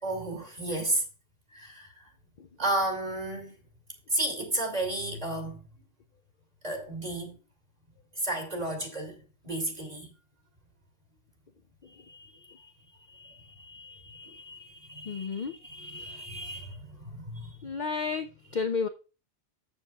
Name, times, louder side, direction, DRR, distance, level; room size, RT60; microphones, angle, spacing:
voice 1, 0.0-1.0 1.5-1.9 2.6-3.5 4.1-5.6 6.6-7.4 8.2-10.1 12.1-12.3 12.6-12.7 13.1-17.6, right 1 dB, 35° right, 2.7 m, -33 dB
voice 2, 15.1-15.5 17.6-18.3 18.5-18.9, left 5 dB, 50° left, 0.6 m, -30 dB
14.0 x 7.1 x 2.3 m
omnidirectional pair, 1.2 m